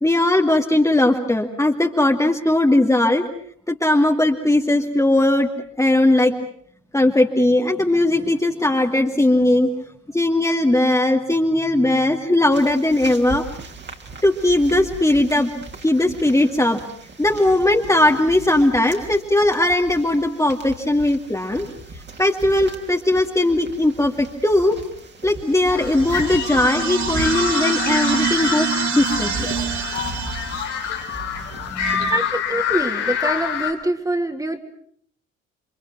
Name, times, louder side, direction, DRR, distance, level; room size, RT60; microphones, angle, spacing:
voice 1, 0.0-3.3 3.7-5.5 5.8-6.3 6.9-9.7 10.1-13.5 14.2-15.5 15.8-16.8 17.2-21.7 22.2-24.8 25.2-29.5 31.3-32.1, left 1 dB, 10° left, 1 dB, 2.4 m, -19 dB
sound 1, 12.5-32.1, right 3 dB, 30° right, 3.4 m, -38 dB
sound 2, 25.7-33.7, left 8 dB, 70° left, 3.6 m, -26 dB
sound 3, 25.7-31.1, right 11 dB, 50° right, 1.3 m, -27 dB
voice 2, 32.0-34.6, right 1 dB, 10° right, 6 dB, 2.9 m, -24 dB
28.0 x 26.0 x 6.1 m, 0.62 s
figure-of-eight pair, 55°, 37 cm